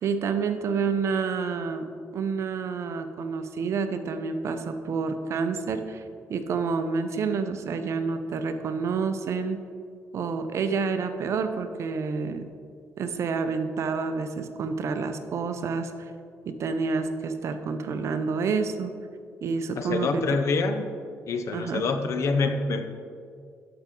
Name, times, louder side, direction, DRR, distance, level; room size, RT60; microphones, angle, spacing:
voice 1, 0.0-6.0 6.3-9.6 10.1-12.4 13.0-16.1 16.5-18.9 19.4-20.4 21.5-21.9, right 5 dB, 60° right, 8 dB, 0.7 m, -29 dB
voice 2, 19.8-20.9 21.3-22.9, left 4 dB, 65° left, 8 dB, 0.7 m, -26 dB
12.0 x 5.7 x 3.8 m, 2.3 s
cardioid pair, 95°, 5 cm